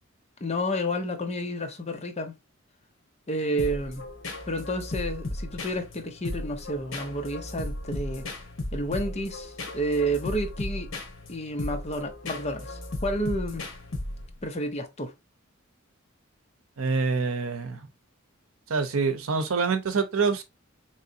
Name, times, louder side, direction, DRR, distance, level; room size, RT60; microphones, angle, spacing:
voice 1, 0.4-2.4 3.3-4.0 4.5-8.3 8.7-10.9 11.3-13.7 14.4-15.1, equal, 30° left, 0.6 m, -30 dB
sound 1, 3.6-14.4, left 1 dB, 65° left, 1.1 m, -36 dB
voice 2, 16.8-17.8 18.7-20.4, right 4 dB, 85° right, 0.7 m, -26 dB
3.8 x 3.1 x 2.6 m
head